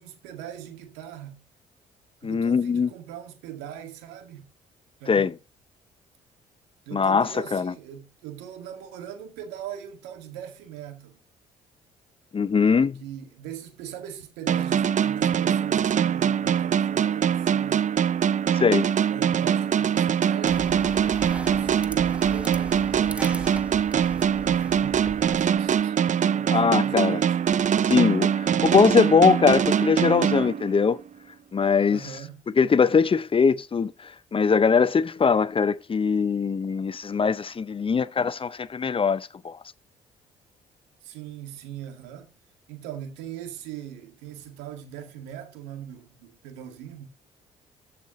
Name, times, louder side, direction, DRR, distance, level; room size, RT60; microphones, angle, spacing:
voice 1, 0.0-1.4 2.2-4.5 5.0-5.3 6.9-11.2 13.0-17.9 19.1-23.5 24.1-27.4 31.9-32.4 41.0-42.3 42.7-47.0, right 10 dB, 85° right, 1.9 m, -40 dB
voice 2, 2.2-2.9 5.1-5.3 6.9-7.7 12.3-13.0 18.5-18.9 26.5-27.2 27.9-31.0 31.5-32.0 32.5-39.6, left 5 dB, 30° left, 0.6 m, -21 dB
sound 1, 14.5-31.1, right 8 dB, 45° right, 0.6 m, -23 dB
sound 2, 20.5-25.8, right 2 dB, 5° right, 1.0 m, -39 dB
14.0 x 5.9 x 3.0 m
hypercardioid pair, 55°, 18 cm